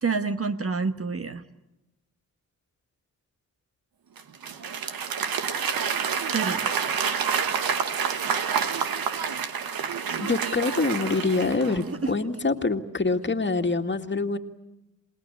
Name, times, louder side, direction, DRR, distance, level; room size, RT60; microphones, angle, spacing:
voice 1, 0.0-1.4 6.3-6.7 11.9-12.1, right 4 dB, 40° right, 9 dB, 1.3 m, -28 dB
Applause / Crowd, 4.2-12.0, right 7 dB, 75° right, 1.6 m, -28 dB
voice 2, 10.2-14.4, left 3 dB, 30° left, 5 dB, 2.0 m, -25 dB
27.0 x 19.0 x 9.9 m, 0.97 s
supercardioid pair, 50°, 36 cm